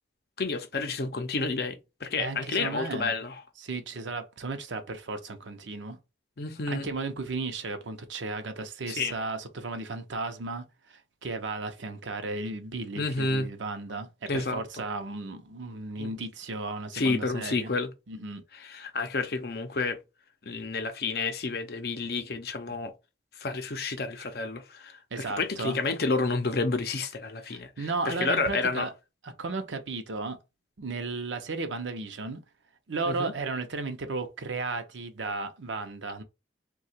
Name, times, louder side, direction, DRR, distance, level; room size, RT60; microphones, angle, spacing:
voice 1, 0.4-3.4 6.4-6.9 8.9-9.1 13.0-13.5 14.3-14.6 16.0-16.2 16.9-17.9 18.5-20.0 20.4-22.9 23.3-28.9 33.1-33.3, left 3 dB, 55° left, 0.6 m, -30 dB
voice 2, 2.2-3.1 3.6-6.0 6.7-17.7 18.1-18.4 25.1-25.8 27.5-28.9 29.2-30.4 30.8-32.4 32.9-36.2, right 3 dB, 85° right, 0.7 m, -34 dB
2.8 x 2.3 x 4.2 m
head